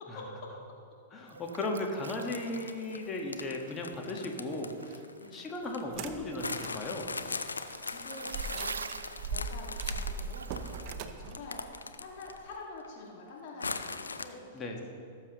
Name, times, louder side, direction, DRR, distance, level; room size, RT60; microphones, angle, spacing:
voice 1, 1.1-5.0 5.3-7.1 14.5-14.8, left 2 dB, 20° left, 1 dB, 1.5 m, -36 dB
sound 1, 1.3-11.0, right 5 dB, 75° right, 0.4 m, -47 dB
sound 2, 2.1-5.8 6.4-12.5 12.8-12.9 13.6-14.2, left 4 dB, 80° left, 0.5 m, -40 dB
sound 3, 5.8-6.8 7.3-7.4 8.3-12.5, right 5 dB, 40° right, 0.7 m, -39 dB
voice 2, 7.5-8.7 9.2-14.8, left 3 dB, 45° left, -2 dB, 1.9 m, -47 dB
17.0 x 7.3 x 3.0 m, 2.3 s
figure-of-eight pair, 100°, 0 cm